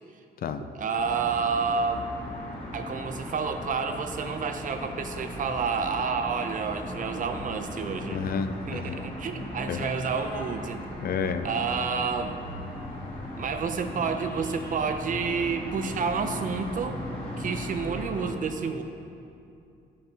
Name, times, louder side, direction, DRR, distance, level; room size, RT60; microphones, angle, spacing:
voice 1, 0.7-2.1 2.7-8.2 8.7-10.8 11.4-12.4 13.4-17.0 17.4-18.8, right 5 dB, 50° right, 7 dB, 0.5 m, -29 dB
sound 1, 0.9-18.3, left 1 dB, 30° left, 2.0 m, -38 dB
voice 2, 8.1-9.0 9.7-9.9 11.0-11.5, left 6 dB, 60° left, 9 dB, 0.4 m, -30 dB
13.0 x 5.3 x 2.9 m, 2.6 s
wide cardioid pair, 140°, 17 cm